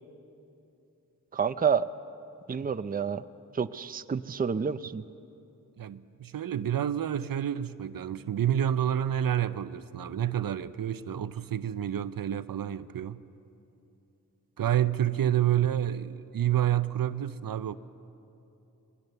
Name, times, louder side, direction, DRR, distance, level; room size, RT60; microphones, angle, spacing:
voice 1, 1.3-1.9 2.5-3.2 3.5-5.0, right 6 dB, 25° right, 0.5 m, -29 dB
voice 2, 5.8-13.2 14.6-17.8, right 10 dB, 70° right, 0.6 m, -29 dB
21.5 x 19.0 x 6.8 m
cardioid pair, 60°, 35 cm